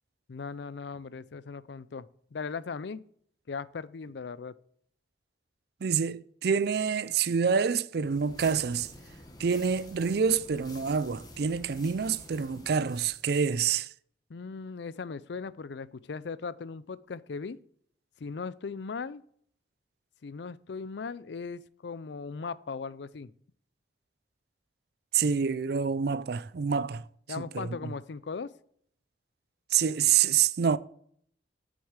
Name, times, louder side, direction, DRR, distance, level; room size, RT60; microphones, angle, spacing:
voice 1, 0.3-3.0 3.5-4.5 14.3-17.6 18.2-19.2 20.2-23.3 27.3-28.5, left 5 dB, 65° left, 0.5 m, -38 dB
voice 2, 5.8-8.9 9.4-13.9 25.1-27.0 27.5-27.9 29.7-30.8, right 6 dB, 60° right, 0.4 m, -27 dB
sound 1, 8.0-13.3, left 1 dB, 20° left, 1.3 m, -49 dB
8.1 x 6.4 x 7.3 m
head